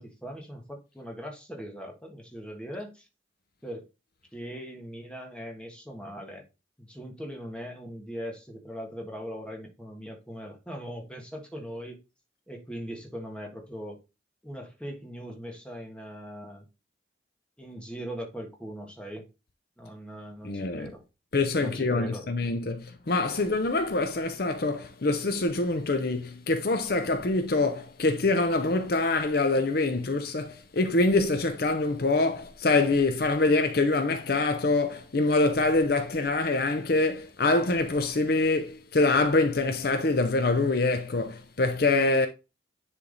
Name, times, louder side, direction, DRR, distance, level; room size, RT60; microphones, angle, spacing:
voice 1, 0.0-3.1 3.6-3.9 4.3-6.4 6.8-12.0 12.5-14.0 14.4-16.6 17.6-19.3 19.8-21.0 21.6-22.3, equal, 5° left, 1.4 m, -40 dB
voice 2, 20.4-20.9 21.3-42.3, left 2 dB, 50° left, 0.6 m, -25 dB
9.9 x 3.4 x 3.9 m
head